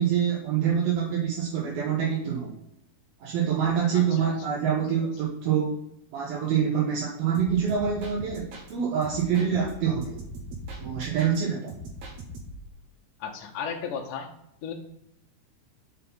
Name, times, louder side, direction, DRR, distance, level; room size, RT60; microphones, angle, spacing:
voice 1, 0.0-2.5 3.2-5.8 6.1-10.2 10.8-11.7, right 8 dB, 75° right, -3 dB, 2.9 m, -26 dB
voice 2, 3.9-4.3 13.2-14.3 14.6-14.7, left 7 dB, 75° left, 1 dB, 2.0 m, -34 dB
sound 1, 7.3-8.7 9.0-11.4 11.7-12.7, right 1 dB, 60° right, 2.3 m, -41 dB
6.4 x 5.8 x 5.4 m, 0.83 s
omnidirectional pair, 4.4 m